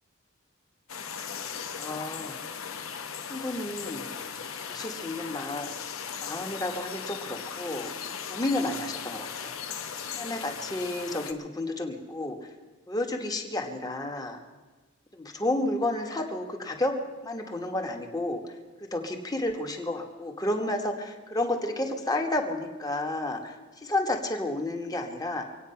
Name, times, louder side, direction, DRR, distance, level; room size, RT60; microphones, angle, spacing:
sound 1, 0.9-11.3, left 7 dB, 90° left, 1.1 m, -38 dB
voice 1, 1.8-2.4 3.3-4.1 4.7-5.9 6.2-7.9 8.3-9.6 10.1-12.4 12.9-14.4 15.1-16.9 17.2-18.5 18.9-25.4, left 1 dB, 20° left, 3 dB, 1.5 m, -31 dB
24.5 x 9.1 x 5.8 m, 1.3 s
head